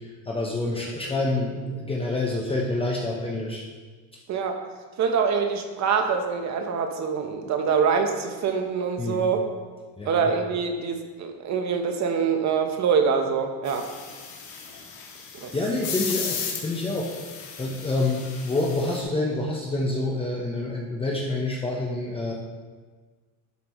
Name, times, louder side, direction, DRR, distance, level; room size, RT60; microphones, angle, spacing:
voice 1, 0.3-3.6 9.0-9.2 10.0-10.3 15.5-17.1 17.6-22.3, left 2 dB, 15° left, -2 dB, 1.0 m, -27 dB
voice 2, 4.3-4.6 5.0-9.4 10.0-13.9 15.3-15.5, right 6 dB, 45° right, 5 dB, 1.2 m, -25 dB
sound 1, 13.6-19.0, left 6 dB, 70° left, 2.0 m, -35 dB
11.5 x 7.2 x 3.2 m, 1.4 s
cardioid pair, 130°, 37 cm